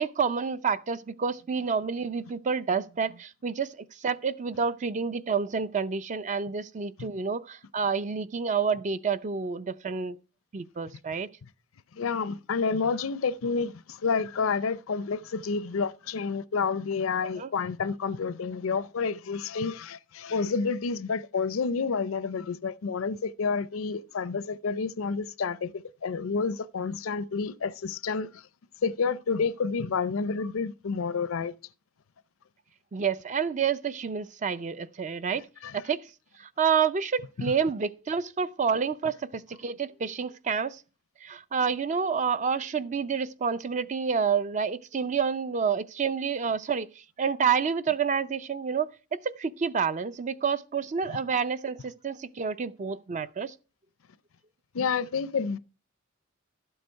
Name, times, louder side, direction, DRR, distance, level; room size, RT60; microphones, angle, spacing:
voice 1, 0.0-10.2 10.5-11.3 17.4-17.5 32.9-35.4 35.7-36.0 36.4-40.8 41.2-46.9 47.2-48.9 49.4-53.5, right 6 dB, 35° right, 0.5 m, -29 dB
voice 2, 12.0-28.4 28.8-31.5 35.6-35.8 37.4-37.5 51.1-51.2 54.7-55.6, left 5 dB, 80° left, 0.5 m, -29 dB
12.0 x 7.9 x 4.5 m
head